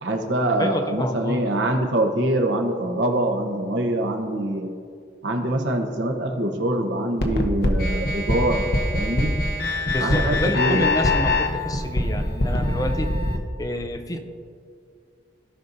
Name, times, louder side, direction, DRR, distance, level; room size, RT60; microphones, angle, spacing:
voice 1, 0.0-4.7 5.2-8.7 8.9-9.3 10.0-10.9, right 1 dB, 85° right, 3 dB, 1.0 m, -24 dB
voice 2, 0.6-1.5 9.9-13.1 13.6-14.2, left 1 dB, 20° left, 5 dB, 0.5 m, -28 dB
sound 1, 7.2-13.4, left 2 dB, 60° left, 0.9 m, -23 dB
16.5 x 5.4 x 2.7 m, 2.3 s
head